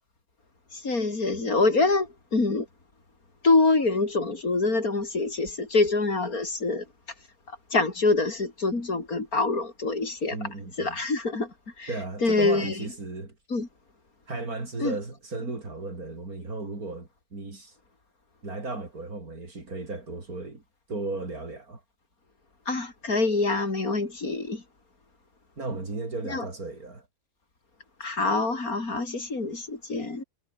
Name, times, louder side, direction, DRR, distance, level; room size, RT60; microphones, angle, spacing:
voice 1, 0.7-2.7 3.4-6.8 7.7-10.4 10.8-11.9 12.2-12.9 13.5-13.7 14.8-15.0 22.7-24.6 26.3-26.5 28.0-30.2, left 3 dB, 75° left, 4.7 m, -25 dB
voice 2, 10.3-11.0 11.9-13.3 14.3-17.8 18.4-20.6 20.9-21.8 25.6-27.1, right 3 dB, 80° right, 4.9 m, -35 dB
omnidirectional pair, 1.5 m